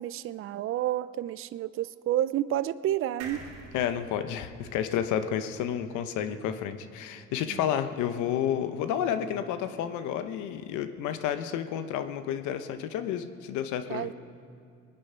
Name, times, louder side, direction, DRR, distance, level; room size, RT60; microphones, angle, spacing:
voice 1, 0.0-3.4 7.5-7.6 13.9-14.1, right 12 dB, 45° right, 16 dB, 0.4 m, -30 dB
sound 1, 3.2-6.7 7.1-7.2 7.4-7.5, right 4 dB, 90° right, 2.6 m, -48 dB
voice 2, 3.7-14.1, left 9 dB, 90° left, 9 dB, 0.9 m, -31 dB
21.0 x 9.7 x 5.5 m, 2.5 s
cardioid pair, 90°, 29 cm